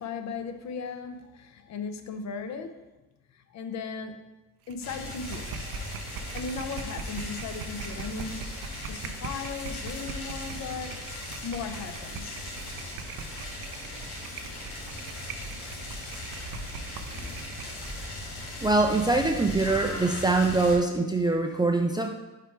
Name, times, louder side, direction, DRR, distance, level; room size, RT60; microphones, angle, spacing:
voice 1, 0.0-2.9 3.3-4.3 4.7-5.6 6.3-8.6 8.8-11.1 11.4-12.4, left 5 dB, 50° left, 7 dB, 0.6 m, -37 dB
sound 1, 4.7-18.0, right 5 dB, 80° right, 0.6 m, -41 dB
sound 2, 4.8-20.8, left 1 dB, 80° left, 1.7 m, -39 dB
voice 2, 18.6-22.1, right 3 dB, 15° right, 2 dB, 0.3 m, -23 dB
5.0 x 4.6 x 4.5 m, 1.1 s
cardioid pair, 130°, 35 cm